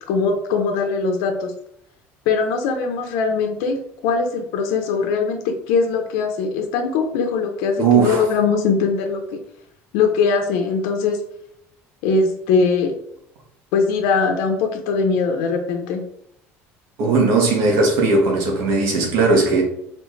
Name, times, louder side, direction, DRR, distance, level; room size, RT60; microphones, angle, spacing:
voice 1, 0.1-1.5 2.3-9.4 9.9-11.2 12.0-12.9 13.7-16.0, left 4 dB, 90° left, 0.6 m, -21 dB
voice 2, 7.8-8.2 17.0-19.6, right 3 dB, 75° right, 1.2 m, -17 dB
4.3 x 2.9 x 3.1 m
cardioid pair, 145°, 5 cm